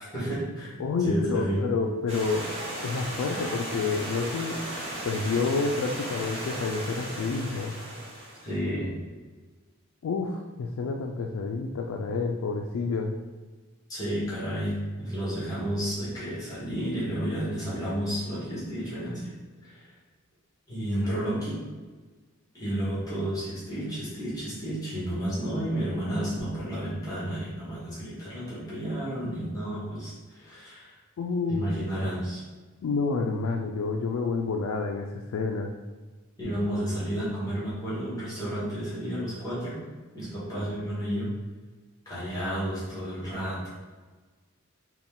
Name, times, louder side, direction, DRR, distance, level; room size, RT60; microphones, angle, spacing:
voice 1, 0.1-0.8 1.0-1.7 8.4-9.0 13.9-19.3 19.6-19.9 20.7-21.6 22.5-30.9 31.5-32.4 36.4-39.8 40.1-41.3 42.0-43.7, equal, 15° left, -10 dB, 1.5 m, -31 dB
voice 2, 0.8-2.5 2.8-4.6 5.0-7.7 10.0-13.1 31.2-32.1 32.8-35.7, left 4 dB, 75° left, 2 dB, 0.3 m, -29 dB
Stream, 2.1-8.5, right 1 dB, 30° right, 1.1 m, -36 dB
4.0 x 2.3 x 3.6 m, 1.4 s
head